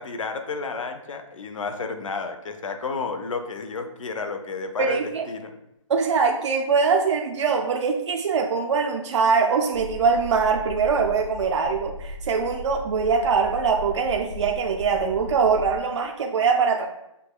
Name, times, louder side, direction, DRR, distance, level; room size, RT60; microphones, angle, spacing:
voice 1, 0.0-5.0 5.3-5.5, left 4 dB, 70° left, 6 dB, 0.6 m, -31 dB
voice 2, 4.8-5.2 5.9-16.9, right 5 dB, 60° right, 2 dB, 0.4 m, -22 dB
sound 1, 9.7-15.8, left 1 dB, 30° left, 0.6 m, -38 dB
6.4 x 2.2 x 2.3 m, 0.84 s
hypercardioid pair, 160°, 17 cm